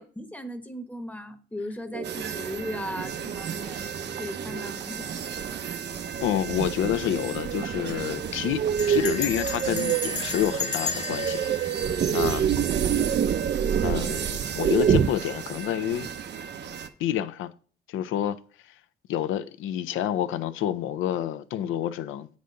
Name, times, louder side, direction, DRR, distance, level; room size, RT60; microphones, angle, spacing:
voice 1, 0.0-3.8 4.2-5.6 12.0-12.3, left 1 dB, 5° left, 0.9 m, -37 dB
sound 1, 1.9-15.1, right 8 dB, 40° right, 0.4 m, -28 dB
sound 2, 2.0-16.9, right 8 dB, 60° right, 0.8 m, -35 dB
voice 2, 6.2-11.4 12.1-12.5 13.8-16.1 17.0-17.5 17.9-18.4 19.1-22.3, left 11 dB, 85° left, 0.6 m, -28 dB
Bell, 6.7-7.0 7.3-7.4 7.6-8.0 8.8-12.9, left 6 dB, 35° left, 0.9 m, -35 dB
8.1 x 4.1 x 6.4 m
cardioid pair, 90°, 20 cm